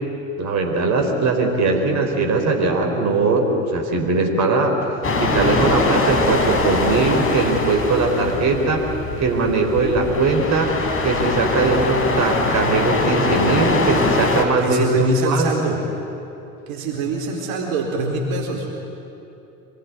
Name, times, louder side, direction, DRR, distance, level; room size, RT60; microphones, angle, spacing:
voice 1, 0.4-4.8 5.2-8.8 9.2-10.7 11.0-14.9 15.2-15.5, right 3 dB, 40° right, 2 dB, 4.6 m, -20 dB
sound 1, 5.0-14.5, left 3 dB, 30° left, 4.4 m, -22 dB
voice 2, 14.6-15.8 16.7-18.7, right 2 dB, 55° right, 0 dB, 4.3 m, -23 dB
26.0 x 20.5 x 9.8 m, 3.0 s
hypercardioid pair, 75°, 41 cm